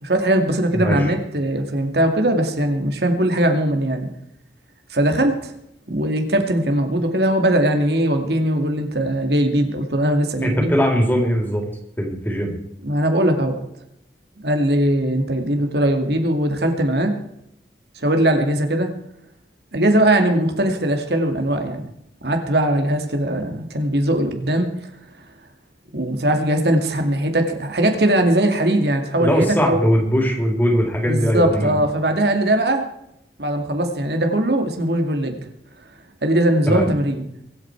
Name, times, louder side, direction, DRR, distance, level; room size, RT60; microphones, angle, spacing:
voice 1, 0.0-4.1 4.9-5.5 5.9-10.8 12.8-13.6 14.4-17.1 18.0-18.9 19.7-21.8 22.2-24.7 25.9-29.8 31.1-32.8 33.4-35.4 36.2-37.2, right 1 dB, 65° right, 5 dB, 2.3 m, -20 dB
voice 2, 0.7-1.1 10.4-11.6 12.0-12.5 29.2-31.8 36.7-36.9, equal, 10° left, 1 dB, 3.8 m, -20 dB
23.5 x 9.2 x 4.7 m, 0.78 s
head